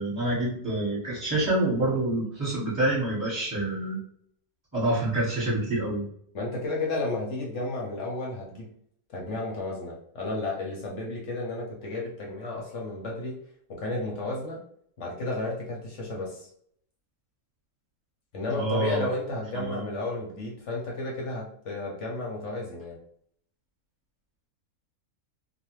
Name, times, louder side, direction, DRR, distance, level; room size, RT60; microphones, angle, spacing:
voice 1, 0.0-4.0 4.7-6.0 18.5-19.1 19.5-19.9, right 1 dB, 10° right, -11 dB, 1.0 m, -27 dB
voice 2, 6.3-8.7 9.1-13.4 13.7-14.6 15.0-16.5 18.3-23.0, left 2 dB, 60° left, -2 dB, 0.9 m, -32 dB
2.5 x 2.2 x 3.0 m, 0.65 s
omnidirectional pair, 1.6 m